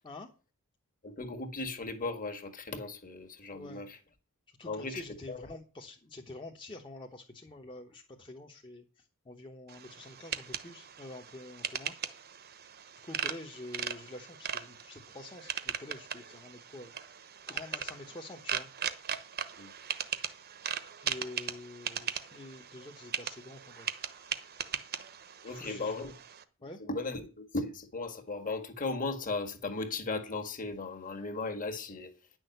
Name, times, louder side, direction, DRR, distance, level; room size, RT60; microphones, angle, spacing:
voice 1, 1.0-4.0 4.6-5.5 19.6-19.7 25.4-26.1 26.8-32.1, left 3 dB, 40° left, 1.8 m, -37 dB
voice 2, 3.5-3.8 4.6-11.9 13.0-16.9 17.5-18.7 21.0-24.9 25.5-26.1 26.6-26.8, left 2 dB, 25° left, 1.1 m, -47 dB
sound 1, 9.7-26.4, right 8 dB, 45° right, 1.0 m, -39 dB
10.5 x 6.4 x 7.9 m
head